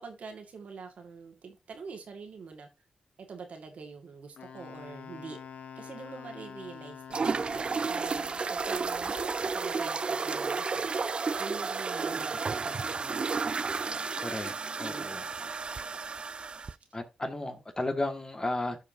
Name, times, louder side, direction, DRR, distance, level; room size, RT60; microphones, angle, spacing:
voice 1, 0.0-2.7 3.2-5.4 5.8-13.4 14.8-15.5, right 5 dB, 70° right, 1.8 m, -45 dB
Wind instrument woodwind instrument, 4.4-8.1, left 7 dB, 80° left, 0.9 m, -46 dB
sound 1, 7.1-16.7, right 4 dB, 45° right, 0.3 m, -32 dB
voice 2, 14.2-14.5 14.8-15.2 16.9-18.8, left 2 dB, 30° left, 1.8 m, -33 dB
13.0 x 4.8 x 2.7 m
cardioid pair, 50°, 2 cm